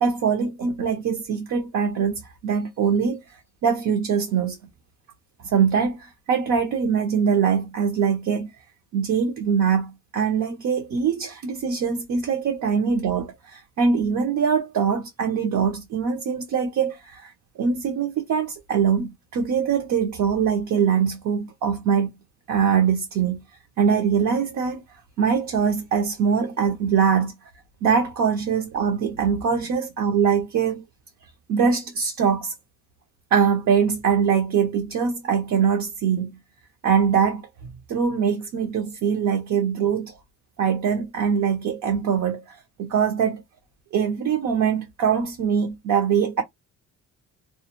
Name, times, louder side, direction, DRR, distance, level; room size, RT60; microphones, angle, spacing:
voice 1, 0.0-3.2 3.6-4.6 5.4-8.5 8.9-22.1 22.5-23.4 23.8-24.8 25.2-27.3 27.8-30.8 31.5-32.5 33.3-36.4 36.8-37.4 37.9-40.1 40.6-43.4 43.9-46.4, right 7 dB, 65° right, 0.7 m, -23 dB
2.2 x 2.0 x 2.8 m
cardioid pair, 120°, 32 cm